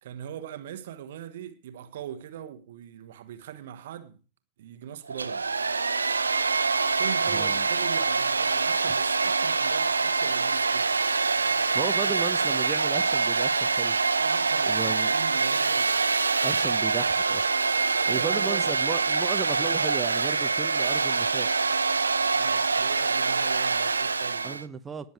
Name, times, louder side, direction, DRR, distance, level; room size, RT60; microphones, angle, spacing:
voice 1, 0.0-4.2 4.6-5.4 6.9-10.9 12.0-12.1 14.2-16.0 18.0-18.7 22.4-24.6, right 10 dB, 55° right, 1.3 m, -40 dB
Domestic sounds home sounds, 5.1-24.6, right 4 dB, 75° right, 0.7 m, -25 dB
voice 2, 7.3-7.7 11.7-14.0 14.7-15.1 16.4-17.5 18.1-21.5 24.4-25.1, right 6 dB, 20° right, 0.9 m, -35 dB
19.5 x 7.1 x 4.7 m
figure-of-eight pair, 90°, 0 cm